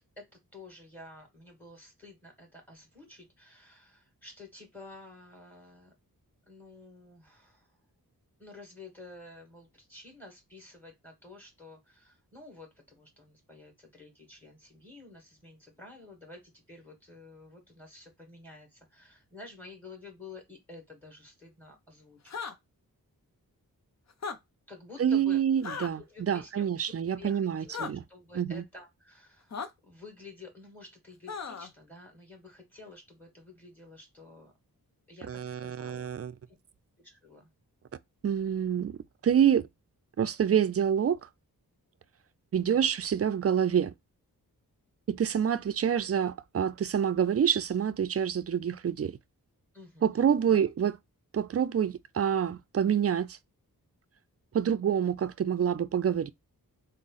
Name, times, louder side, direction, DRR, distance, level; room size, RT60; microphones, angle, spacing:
voice 1, 0.2-5.9 6.5-7.7 8.4-22.4 24.7-25.4 26.0-26.7 27.2-34.5 35.1-36.1 37.0-37.5 49.7-50.7, left 3 dB, 5° left, 2.3 m, -50 dB
sound 1, 22.3-22.5 24.1-24.4 25.6-25.9 27.7-27.9 29.5-29.7 31.3-31.7, left 5 dB, 45° left, 0.6 m, -36 dB
voice 2, 25.0-28.0 28.4-28.6 35.3-36.3 38.2-39.0 39.2-39.6 40.2-41.2 42.5-43.9 45.1-49.2 50.0-50.9 51.3-53.4 54.5-56.3, right 8 dB, 40° right, 0.4 m, -27 dB
3.6 x 2.1 x 4.0 m
cardioid pair, 65°, 37 cm